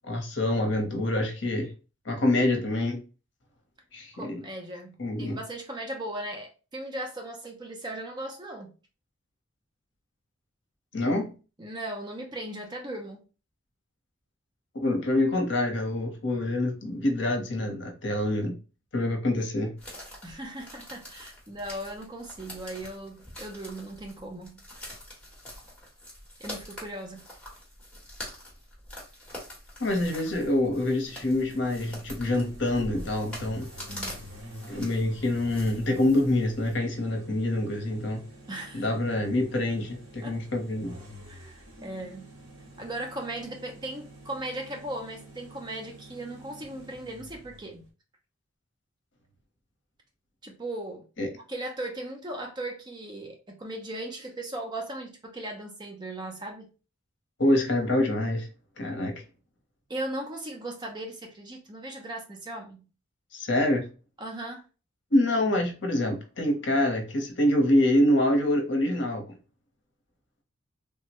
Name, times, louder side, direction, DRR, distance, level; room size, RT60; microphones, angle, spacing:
voice 1, 0.1-1.7 2.0-3.0 3.9-4.4 5.0-5.4 10.9-11.3 14.7-18.5 18.9-19.7 29.8-33.7 34.7-38.2 38.7-40.9 51.2-51.3 57.4-58.5 58.8-59.1 63.3-63.9 65.1-69.2, left 1 dB, 55° left, 0.8 m, -26 dB
voice 2, 4.1-8.7 11.6-13.3 20.2-24.6 26.4-27.3 33.9-34.2 38.5-38.9 40.2-40.4 41.3-42.3 42.8-47.8 50.4-51.1 51.5-56.7 59.9-62.9 64.2-64.6, right 1 dB, 20° right, 0.5 m, -38 dB
sound 1, 19.8-36.7, left 1 dB, 5° left, 1.0 m, -44 dB
sound 2, 31.1-47.9, right 1 dB, 75° right, 1.1 m, -48 dB
3.4 x 2.1 x 2.8 m
head